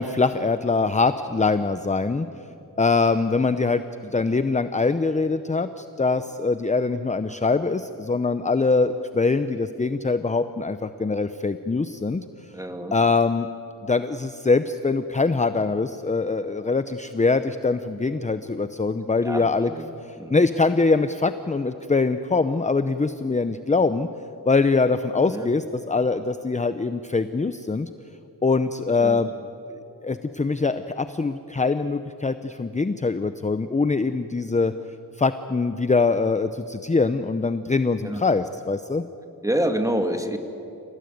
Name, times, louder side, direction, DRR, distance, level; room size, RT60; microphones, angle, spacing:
voice 1, 0.0-2.3 2.8-12.2 12.9-13.5 13.8-19.7 20.0-24.1 24.5-27.9 28.4-29.3 29.7-34.7 35.2-39.0, left 4 dB, 20° left, 11 dB, 0.7 m, -23 dB
voice 2, 12.5-12.9 19.2-19.4 19.7-19.9 20.2-20.4 25.3-25.5 29.0-29.2 38.0-38.2 39.4-40.4, right 1 dB, 10° right, 5 dB, 2.1 m, -26 dB
27.0 x 18.0 x 9.3 m, 2.8 s
wide cardioid pair, 90°, 38 cm